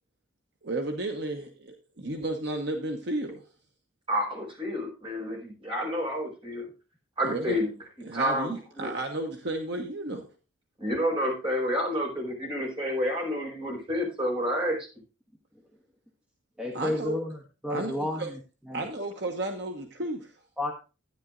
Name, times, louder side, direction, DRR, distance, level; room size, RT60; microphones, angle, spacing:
voice 1, 0.6-3.4 7.2-7.6 8.1-10.3 16.7-17.2 17.7-18.3 18.7-20.3, right 2 dB, 55° right, 3 dB, 1.2 m, -33 dB
voice 2, 4.1-6.7 7.2-7.7 8.1-8.9 10.8-14.8, equal, 25° right, -1 dB, 4.8 m, -29 dB
voice 3, 16.6-18.4 18.7-18.9 20.6-20.7, left 1 dB, 5° right, 0 dB, 1.3 m, -31 dB
12.5 x 9.7 x 2.5 m, 0.31 s
head